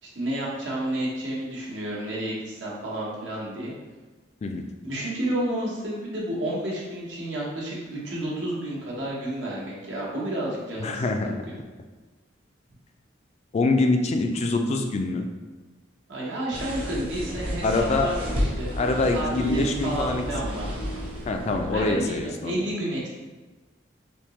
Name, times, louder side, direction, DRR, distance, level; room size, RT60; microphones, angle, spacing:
voice 1, 0.0-3.7 4.8-11.4 16.1-18.7 19.1-20.7 21.7-23.1, right 1 dB, 75° right, -5 dB, 1.0 m, -31 dB
voice 2, 10.8-11.4 13.5-15.3 17.6-18.1 18.8-20.2 21.3-22.6, left 2 dB, 35° left, 4 dB, 0.3 m, -24 dB
sound 1, 16.5-22.3, equal, 30° right, 0.7 m, -32 dB
3.5 x 2.7 x 3.0 m, 1.3 s
head